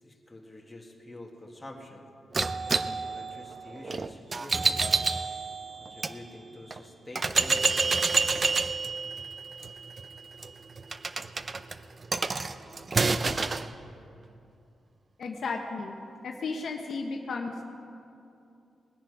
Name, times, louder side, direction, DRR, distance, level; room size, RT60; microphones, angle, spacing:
voice 1, 0.0-2.1 2.9-4.9 5.8-8.3, left 1 dB, 15° left, 0 dB, 1.8 m, -47 dB
sound 1, 2.3-6.1 6.7-6.8 7.2-13.7, right 4 dB, 35° right, 0.5 m, -29 dB
voice 2, 15.2-16.0 16.2-17.6, left 4 dB, 60° left, 3 dB, 1.0 m, -34 dB
20.0 x 10.0 x 4.9 m, 2.6 s
cardioid pair, 115°, 0 cm